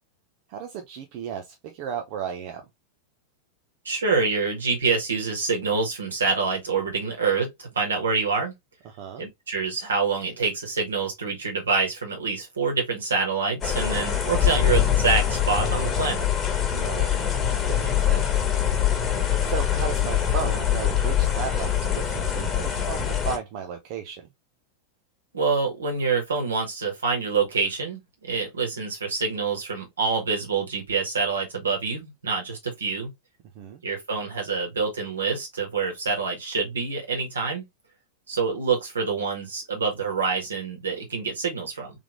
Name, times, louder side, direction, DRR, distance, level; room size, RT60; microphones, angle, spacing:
voice 1, 0.5-2.7 8.8-9.2 16.7-18.4 19.4-24.3 33.5-33.8, right 7 dB, 45° right, 0.7 m, -35 dB
voice 2, 3.9-8.5 9.2-16.2 25.3-28.0 28.3-33.1 33.8-37.6 38.3-41.9, right 4 dB, 70° right, 1.8 m, -26 dB
sound 1, 13.6-23.4, left 9 dB, 20° left, 1.4 m, -24 dB
3.6 x 3.4 x 3.1 m
figure-of-eight pair, 90°, 0 cm